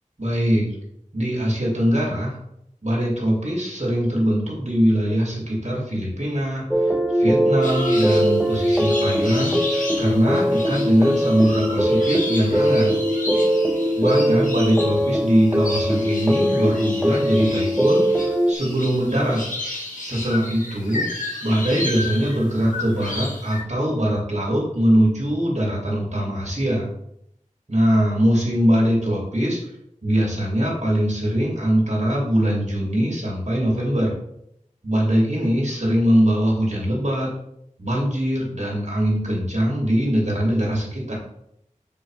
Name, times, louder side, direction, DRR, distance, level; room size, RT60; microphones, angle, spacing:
voice 1, 0.2-0.7 1.1-2.4 2.8-12.9 13.9-19.4 20.0-21.1 21.4-26.9 27.7-29.6 30.0-34.1 34.8-37.3 37.8-41.1, equal, 60° right, -4 dB, 2.6 m, -22 dB
sound 1, 6.7-18.5, equal, 5° right, 0.4 m, -21 dB
sound 2, 7.6-23.6, left 2 dB, 80° left, 1.6 m, -33 dB
7.3 x 3.5 x 4.7 m, 0.76 s
wide cardioid pair, 40°, 14 cm